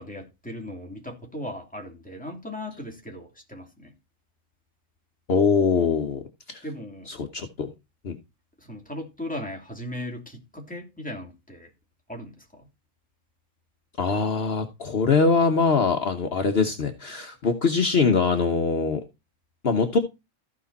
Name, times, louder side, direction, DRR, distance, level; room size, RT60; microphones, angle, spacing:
voice 1, 0.0-3.9 6.6-7.1 8.6-11.7 12.1-12.7, left 1 dB, 5° left, 3.0 m, -37 dB
voice 2, 5.3-6.2 6.5-6.6 7.1-7.7 8.0-8.2 14.0-19.0 19.6-20.0, left 5 dB, 55° left, 1.3 m, -23 dB
14.5 x 5.2 x 4.1 m
omnidirectional pair, 1.3 m